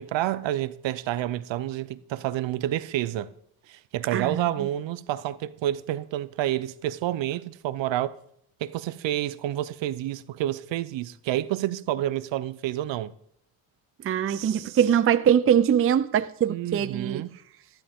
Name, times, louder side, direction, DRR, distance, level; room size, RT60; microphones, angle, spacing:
voice 1, 0.0-3.3 3.7-8.2 8.6-13.1 14.3-14.8 16.5-17.3, right 13 dB, 65° right, 0.7 m, -29 dB
voice 2, 4.1-4.7 14.0-17.2, right 9 dB, 30° right, 0.5 m, -22 dB
12.5 x 11.5 x 3.6 m
supercardioid pair, 80°, 49 cm